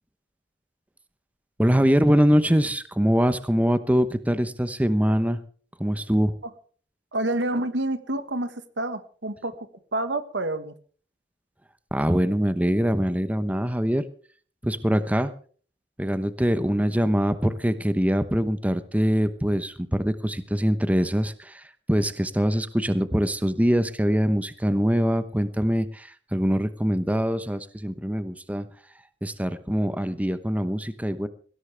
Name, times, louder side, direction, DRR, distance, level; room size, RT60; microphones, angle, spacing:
voice 1, 1.6-5.4 5.8-6.3 11.9-14.1 14.6-15.3 16.0-28.7 29.2-31.3, equal, 10° right, 11 dB, 0.9 m, -23 dB
voice 2, 7.1-10.7, right 1 dB, 85° right, 11 dB, 1.6 m, -28 dB
20.5 x 16.5 x 3.4 m, 0.44 s
head